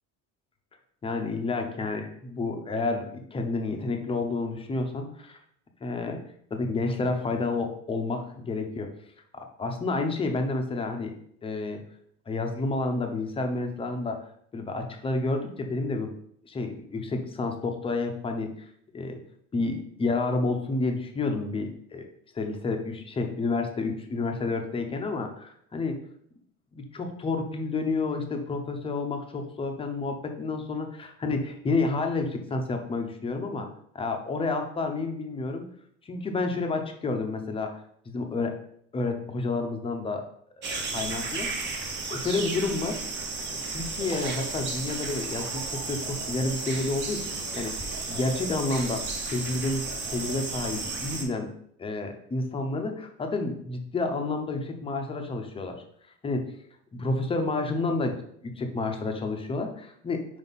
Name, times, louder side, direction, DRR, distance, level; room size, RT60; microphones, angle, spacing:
voice 1, 1.0-5.4 5.8-6.2 6.5-8.9 9.3-11.1 11.4-11.8 12.3-14.2 14.5-16.1 16.4-18.7 18.9-19.2 19.5-22.1 22.3-26.0 26.7-33.7 33.9-35.7 36.1-37.7 38.1-38.5 38.9-40.3 40.6-41.5 42.1-43.0 43.5-47.3 47.5-49.8 50.1-51.5 51.8-55.8 56.2-56.4 56.9-58.2 58.4-60.2, left 3 dB, 15° left, 4 dB, 0.7 m, -30 dB
sound 1, 40.6-51.3, right 3 dB, 35° right, 1.0 m, -33 dB
5.4 x 5.1 x 4.0 m, 0.67 s
cardioid pair, 165°, 32 cm